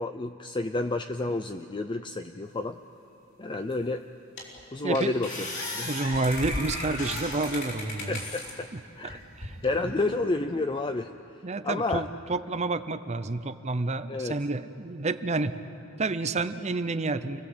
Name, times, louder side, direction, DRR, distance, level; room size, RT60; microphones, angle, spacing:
voice 1, 0.0-2.8 3.4-4.0 4.7-5.3 5.8-5.9 8.1-8.7 9.0-9.2 9.6-11.1 11.6-12.1 14.1-14.4, left 2 dB, 25° left, 7 dB, 0.5 m, -30 dB
sound 1, 3.7-3.8 4.4-4.6 4.9-8.5 9.1-9.7, left 1 dB, 55° left, 5.3 m, -35 dB
voice 2, 4.8-5.1 5.8-8.2 8.7-8.8 9.4-10.1 11.4-15.5 16.0-17.4, right 3 dB, 30° right, 11 dB, 0.7 m, -29 dB
29.0 x 19.5 x 7.9 m, 2.8 s
head